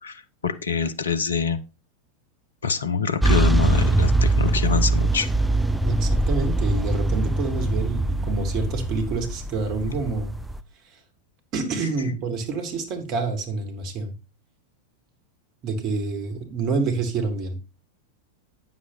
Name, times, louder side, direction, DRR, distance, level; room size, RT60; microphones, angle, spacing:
voice 1, 0.0-1.6 2.6-5.3 12.0-12.1, left 6 dB, 70° left, 12 dB, 1.2 m, -25 dB
sound 1, 3.2-10.6, right 2 dB, 5° right, 0.7 m, -22 dB
voice 2, 5.8-10.4 10.8-11.0 11.5-14.1 15.6-17.6, right 4 dB, 35° right, 5 dB, 3.1 m, -27 dB
9.7 x 7.6 x 4.2 m, 0.29 s
figure-of-eight pair, 90°, 0 cm